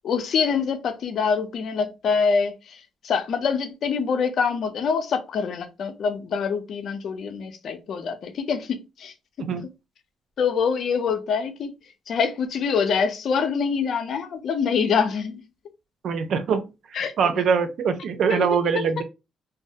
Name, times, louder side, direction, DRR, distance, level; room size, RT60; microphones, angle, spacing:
voice 1, 0.0-9.5 10.4-11.7 12.1-15.4 16.9-17.1 18.3-18.5, left 6 dB, 65° left, 0.4 m, -25 dB
voice 2, 16.0-16.6 17.2-19.0, right 6 dB, 65° right, 0.4 m, -23 dB
2.3 x 2.0 x 2.6 m
cardioid pair, 90°, 0 cm